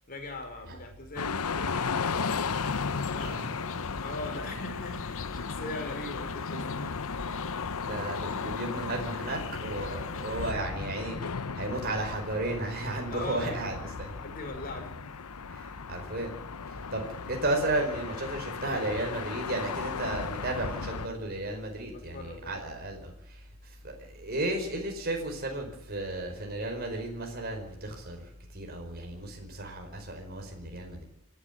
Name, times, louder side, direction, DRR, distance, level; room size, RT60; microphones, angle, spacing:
voice 1, 0.1-2.6 3.1-7.1 13.1-13.9 14.2-15.1 21.9-22.6, left 2 dB, 40° left, 3 dB, 5.4 m, -41 dB
sound 1, 1.2-21.1, left 5 dB, 90° left, 0.9 m, -35 dB
sound 2, 2.5-10.5, left 4 dB, 60° left, 0.8 m, -41 dB
voice 2, 7.8-14.2 15.5-16.3 16.7-31.1, right 2 dB, 45° right, 2 dB, 4.8 m, -34 dB
27.0 x 11.5 x 8.5 m, 0.83 s
head